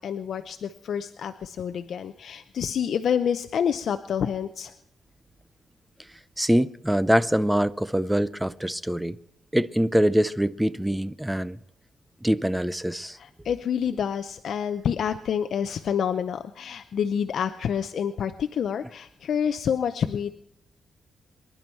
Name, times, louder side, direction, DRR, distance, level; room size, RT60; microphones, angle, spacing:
voice 1, 0.0-4.7 13.2-20.3, left 8 dB, 60° left, 0.6 m, -28 dB
voice 2, 6.4-9.2 9.5-11.6 12.2-13.2, equal, 5° right, 0.5 m, -24 dB
24.5 x 11.0 x 4.5 m
wide cardioid pair, 170°, 0 cm